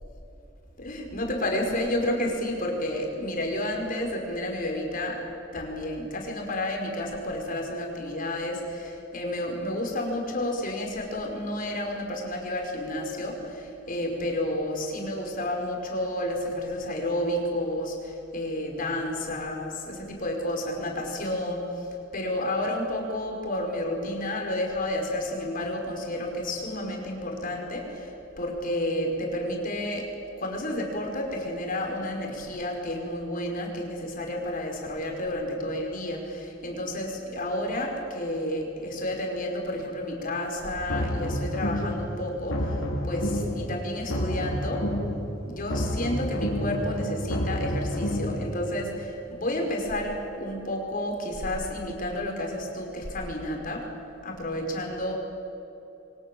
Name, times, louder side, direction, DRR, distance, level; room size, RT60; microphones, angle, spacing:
voice 1, 0.8-5.2 5.5-21.9 22.1-30.1 30.4-44.8 45.5-53.8 54.2-55.1, left 1 dB, 45° left, 1 dB, 5.4 m, -31 dB
sound 1, 40.7-42.0 42.3-43.6 43.9-45.2 45.5-48.4, equal, 85° left, 4.7 m, -29 dB
29.5 x 24.0 x 7.8 m, 3.0 s
head